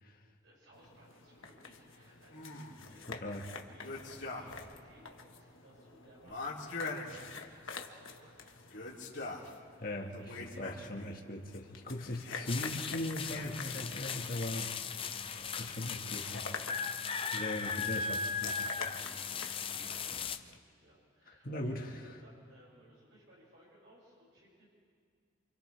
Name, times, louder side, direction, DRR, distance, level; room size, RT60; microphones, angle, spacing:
voice 1, 0.4-9.4 9.7-10.8 19.7-24.7, right 1 dB, 70° right, -7 dB, 6.4 m, -62 dB
sound 1, 0.7-20.6, left 5 dB, 85° left, 1.4 m, -49 dB
sound 2, 2.3-2.9 3.8-4.8 5.0-5.1 6.2-7.8 8.6-9.5 10.1-11.2 12.2-12.8 13.3-14.0, left 3 dB, 60° left, 3.1 m, -43 dB
voice 2, 3.1-3.4 9.8-14.7 15.6-16.5 17.3-18.7 20.1-20.3 21.3-22.0, left 1 dB, 45° left, 1 dB, 1.7 m, -39 dB
sound 3, 12.5-20.4, left 5 dB, 25° left, 0.5 m, -38 dB
28.5 x 26.5 x 3.4 m, 2.1 s
head